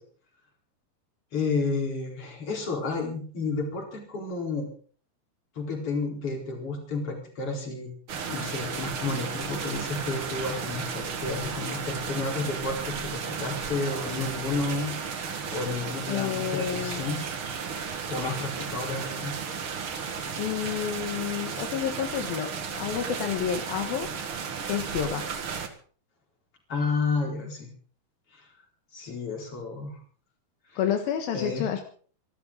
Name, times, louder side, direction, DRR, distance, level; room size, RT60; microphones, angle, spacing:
voice 1, 1.3-4.7 5.5-7.9 8.3-14.9 15.5-17.2 18.1-19.4 26.7-27.7 28.3-28.4 28.9-30.0 30.7-30.8 31.3-31.7, left 3 dB, 40° left, 1 dB, 5.1 m, -31 dB
sound 1, 8.1-25.7, right 6 dB, 45° right, 2.1 m, -34 dB
voice 2, 16.1-17.0 20.4-24.4 24.7-25.3 30.8-31.8, left 9 dB, 80° left, 6 dB, 3.3 m, -30 dB
26.0 x 12.5 x 3.9 m, 0.43 s
omnidirectional pair, 4.1 m